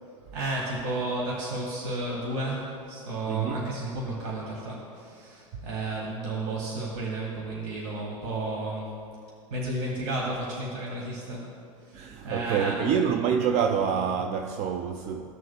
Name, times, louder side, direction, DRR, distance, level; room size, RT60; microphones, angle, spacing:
voice 1, 0.3-8.9 9.5-11.5 11.8-13.0, right 2 dB, 55° right, 1.7 m, -32 dB
voice 2, 3.3-3.7 11.9-15.3, right 7 dB, 40° right, 0.5 m, -27 dB
15.5 x 6.4 x 2.3 m
figure-of-eight pair, 85°, 18 cm